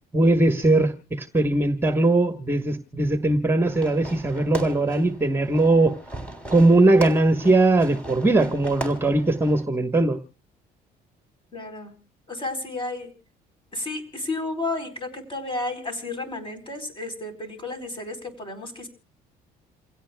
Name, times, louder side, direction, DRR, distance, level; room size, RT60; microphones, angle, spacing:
voice 1, 0.1-5.9 6.5-10.2, right 2 dB, 15° right, 1.3 m, -20 dB
Fireworks, 3.6-9.6, right 1 dB, 5° left, 3.3 m, -38 dB
voice 2, 11.5-12.0 12.3-13.1 13.7-18.9, left 2 dB, 30° left, 4.2 m, -32 dB
28.5 x 16.5 x 2.3 m
cardioid pair, 110°, 17 cm